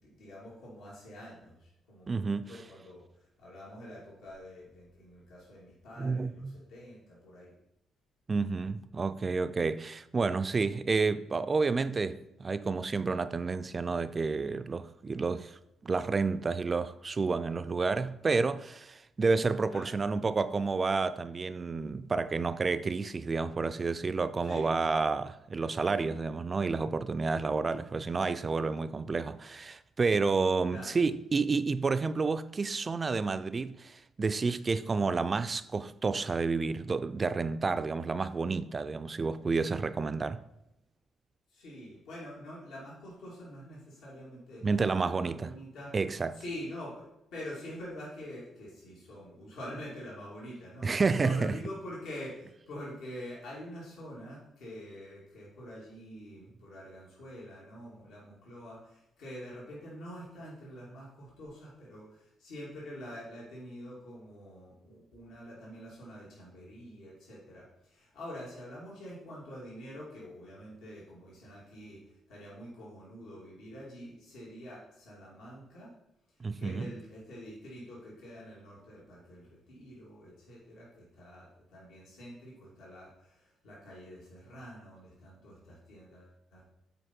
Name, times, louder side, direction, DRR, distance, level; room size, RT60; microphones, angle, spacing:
voice 1, 0.0-7.5 19.7-19.9 24.4-24.7 30.7-31.0 41.5-44.6 45.0-45.9 46.3-75.9 76.6-86.6, equal, 85° left, 2.4 m, -46 dB
voice 2, 2.1-2.5 6.0-6.5 8.3-40.4 44.6-45.5 45.9-46.4 50.8-51.6 76.4-76.9, right 4 dB, 35° right, 0.3 m, -30 dB
8.0 x 4.6 x 4.4 m
cardioid pair, 90°, 0 cm